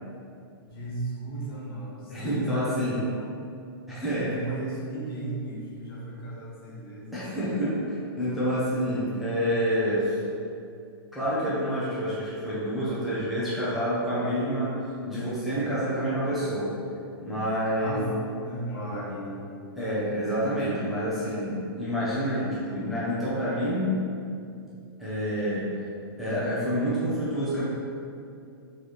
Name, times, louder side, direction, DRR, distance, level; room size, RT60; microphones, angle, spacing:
voice 1, 0.7-3.2 4.2-7.1 15.0-15.1 17.8-18.1 18.4-19.4 25.7-25.8, right 1 dB, 65° left, -6 dB, 1.4 m, -35 dB
voice 2, 2.1-3.0 3.9-4.4 7.1-10.2 11.1-14.7 15.1-16.8 17.2-18.0 19.8-24.0 25.0-25.8 26.2-27.6, equal, ahead, -12 dB, 0.6 m, -28 dB
3.3 x 3.1 x 4.0 m, 2.5 s
hypercardioid pair, 170°, 13 cm